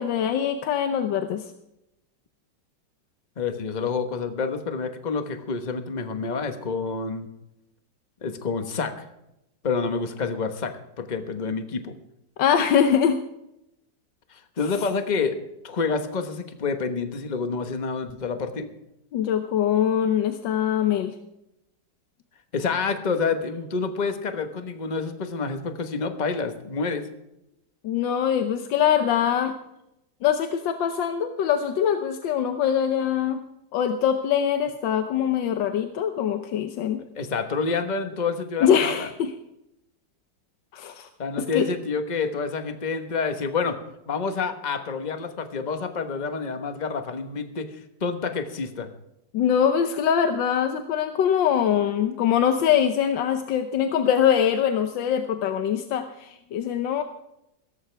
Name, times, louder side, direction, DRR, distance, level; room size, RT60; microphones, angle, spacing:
voice 1, 0.0-1.4 12.4-13.2 19.1-21.1 27.8-29.5 30.2-33.4 33.7-37.0 38.6-39.3 40.7-41.1 41.4-41.7 49.3-57.0, left 8 dB, 85° left, 7 dB, 1.6 m, -23 dB
voice 2, 3.4-7.3 8.2-9.0 9.6-11.9 14.3-15.4 15.6-18.7 22.5-27.1 37.2-39.1 41.2-43.8 44.1-48.9, left 4 dB, 25° left, 7 dB, 1.2 m, -28 dB
16.5 x 14.0 x 3.4 m, 0.86 s
omnidirectional pair, 2.0 m